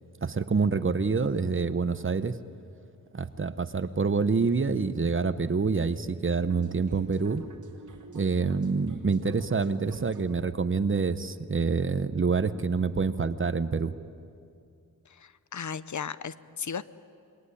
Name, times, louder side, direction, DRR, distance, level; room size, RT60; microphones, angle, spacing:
voice 1, 0.2-2.4 3.1-7.4 8.1-13.9, right 4 dB, 35° right, 13 dB, 0.9 m, -27 dB
sound 1, 6.4-12.2, right 4 dB, 60° right, 2.3 m, -49 dB
voice 2, 15.1-16.8, left 7 dB, 60° left, 16 dB, 0.7 m, -36 dB
27.5 x 21.5 x 9.9 m, 2.4 s
wide cardioid pair, 130°, 34 cm